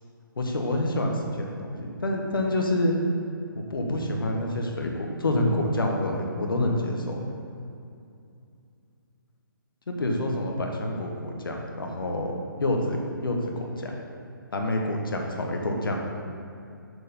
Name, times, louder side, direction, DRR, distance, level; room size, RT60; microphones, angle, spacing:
voice 1, 0.4-2.9 3.5-7.2 9.9-12.3 12.6-13.9 14.5-16.0, left 1 dB, 75° left, 1 dB, 1.2 m, -27 dB
6.4 x 4.6 x 5.1 m, 2.6 s
figure-of-eight pair, 145°, 12 cm